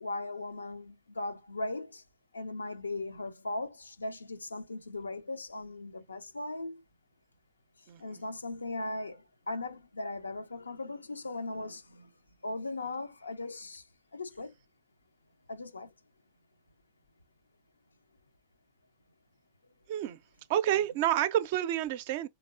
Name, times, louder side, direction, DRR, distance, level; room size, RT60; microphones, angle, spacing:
voice 1, 0.0-2.0 2.3-6.8 8.0-12.1 12.4-13.8 14.1-14.5 15.5-15.9, left 2 dB, 80° left, 0.4 m, -38 dB
voice 2, 7.9-8.2 19.9-20.2 20.5-22.3, right 12 dB, 50° right, 0.4 m, -29 dB
3.4 x 2.9 x 2.5 m
figure-of-eight pair, 90°, 0 cm